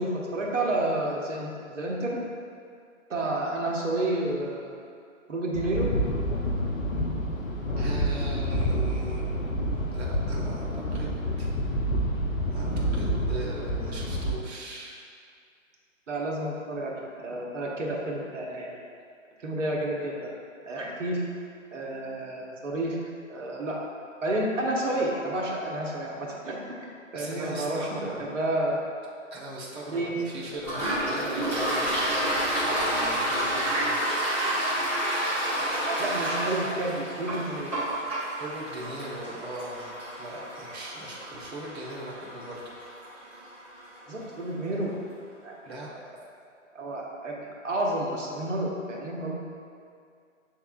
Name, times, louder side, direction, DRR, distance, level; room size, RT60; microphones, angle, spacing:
voice 1, 0.0-2.2 3.1-4.8 5.3-5.9 16.1-18.8 19.4-20.1 20.6-21.2 21.7-23.0 23.3-23.8 24.2-26.9 27.1-27.9 28.3-28.8 29.9-30.2 36.0-37.7 44.1-45.0 45.4-45.5 46.7-49.4, right 1 dB, 70° right, -2 dB, 1.0 m, -30 dB
sound 1, 5.5-14.4, equal, 85° left, 0.7 m, -28 dB
voice 2, 7.8-9.3 9.7-11.5 12.5-15.0 27.1-28.3 29.3-34.0 38.0-39.9 40.2-42.6 45.6-45.9, right 1 dB, 55° right, -4 dB, 1.2 m, -39 dB
Toilet flush, 30.6-44.0, right 1 dB, 10° right, 0.4 m, -30 dB
6.5 x 3.5 x 2.3 m, 2.3 s
figure-of-eight pair, 135°, 39 cm